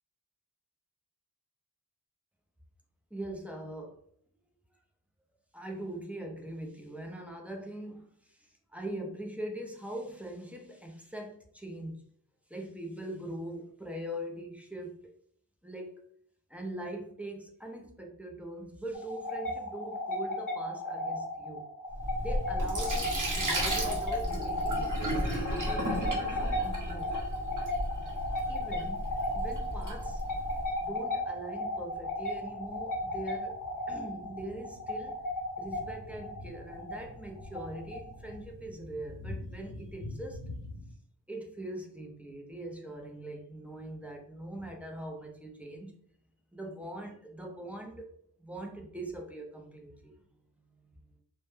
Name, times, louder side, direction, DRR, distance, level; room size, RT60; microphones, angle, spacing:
voice 1, 3.1-4.0 5.5-12.0 12.5-15.1 15.6-16.0 16.5-21.7 22.2-27.1 28.5-29.1 29.3-30.2 30.8-33.6 33.9-35.2 35.6-40.4 41.3-45.9 46.5-48.1 48.4-50.1 50.7-51.0, right 1 dB, 5° right, 1 dB, 0.4 m, -42 dB
sound 1, 18.9-38.3, left 1 dB, 50° left, 0.7 m, -35 dB
Sink (filling or washing), 21.9-30.7, equal, 45° right, 0.8 m, -34 dB
sound 2, 25.7-40.9, left 1 dB, 85° left, 0.7 m, -48 dB
2.1 x 2.1 x 3.0 m, 0.65 s
wide cardioid pair, 95°, 42 cm